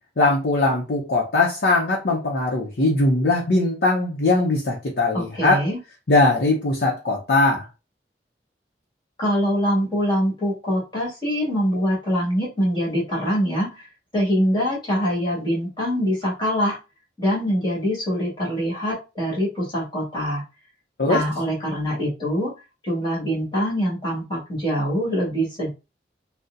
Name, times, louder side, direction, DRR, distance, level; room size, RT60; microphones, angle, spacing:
voice 1, 0.2-5.6 6.1-7.7 21.0-21.2, left 2 dB, 60° left, -2 dB, 0.7 m, -20 dB
voice 2, 5.1-5.8 9.2-13.9 14.1-16.8 17.2-20.4 21.0-22.5 22.8-25.7, equal, 25° left, -5 dB, 1.7 m, -24 dB
4.0 x 2.1 x 2.5 m, 0.28 s
head